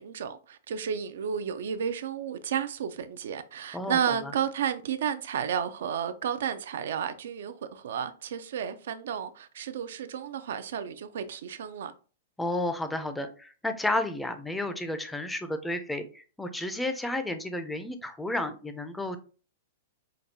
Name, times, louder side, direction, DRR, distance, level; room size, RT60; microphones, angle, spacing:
voice 1, 0.0-11.9, right 8 dB, 75° right, 0.4 m, -32 dB
voice 2, 3.7-4.3 12.4-19.2, left 1 dB, 5° left, 0.4 m, -32 dB
5.1 x 2.3 x 2.7 m
hypercardioid pair, 150°, 0 cm